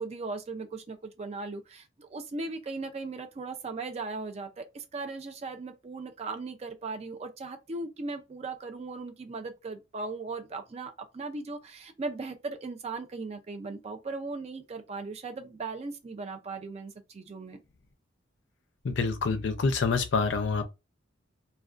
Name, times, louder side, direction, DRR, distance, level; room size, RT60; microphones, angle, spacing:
voice 1, 0.0-17.6, right 3 dB, 35° right, 0.3 m, -38 dB
voice 2, 18.8-20.6, left 4 dB, 65° left, 0.4 m, -27 dB
2.3 x 2.2 x 2.4 m
head